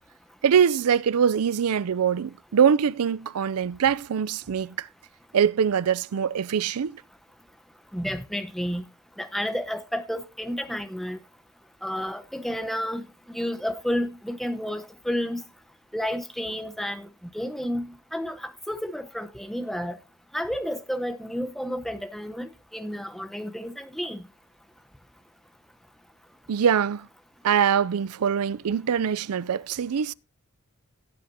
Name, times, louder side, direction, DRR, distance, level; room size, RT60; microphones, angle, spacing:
voice 1, 0.4-4.9 5.3-7.0 26.5-27.1 27.4-30.1, right 7 dB, 85° right, 0.4 m, -23 dB
voice 2, 7.9-8.8 9.2-11.2 11.8-13.0 13.3-15.4 15.9-17.1 17.3-20.0 20.3-24.2, equal, ahead, 0.9 m, -31 dB
17.0 x 8.5 x 2.8 m
head